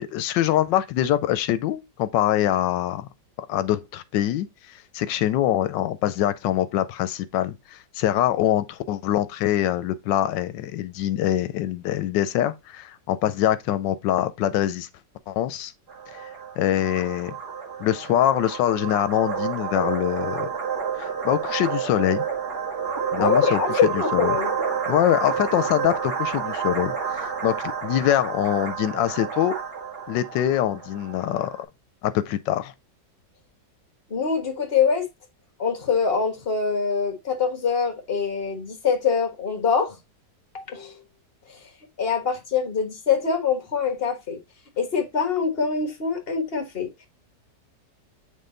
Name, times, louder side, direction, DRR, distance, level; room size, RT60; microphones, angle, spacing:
voice 1, 0.0-3.1 3.4-14.9 15.3-15.7 16.1-16.3 16.6-17.3 17.8-20.5 21.0-22.2 23.1-23.6 23.9-24.3 24.9-27.5 27.8-29.5 30.1-31.5 32.0-32.7, left 12 dB, 90° left, 1.3 m, -24 dB
sound 1, 15.9-31.6, right 6 dB, 60° right, 2.4 m, -30 dB
voice 2, 23.2-24.5 34.1-35.0 35.6-40.0 40.5-41.0 41.5-41.6 42.0-44.4 44.8-46.9, left 6 dB, 35° left, 1.7 m, -24 dB
7.9 x 3.7 x 3.9 m
omnidirectional pair, 1.9 m